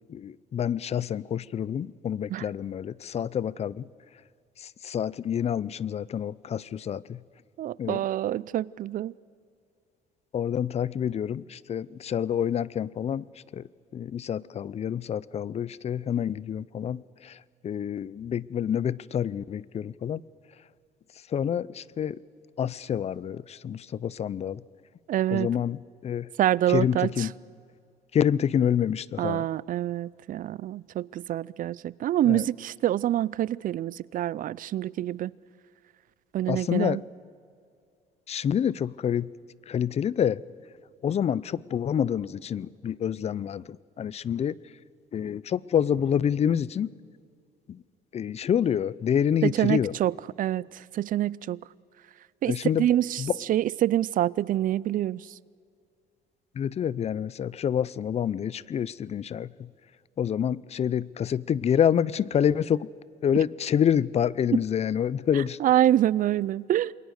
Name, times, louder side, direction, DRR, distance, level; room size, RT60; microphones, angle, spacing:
voice 1, 0.1-3.9 4.6-7.2 7.8-8.0 10.3-13.3 13.5-13.6 13.9-17.4 17.6-20.2 21.3-22.2 22.6-24.6 25.3-26.3 26.7-27.3 28.1-29.5 32.3-32.5 36.5-37.0 38.3-39.3 39.7-40.4 41.0-44.6 45.1-46.9 47.7-47.8 48.1-49.9 52.5-52.9 53.2-53.4 56.5-59.7 60.2-62.9 63.2-65.6, left 8 dB, 40° left, 22 dB, 0.6 m, -27 dB
voice 2, 7.6-9.1 25.1-25.5 26.4-27.3 29.2-35.3 36.3-37.0 49.4-51.6 52.4-52.5 52.8-53.2 53.5-55.2 65.6-66.9, right 12 dB, 55° right, 23 dB, 0.5 m, -26 dB
28.5 x 22.0 x 6.5 m, 2.4 s
cardioid pair, 110°, 17 cm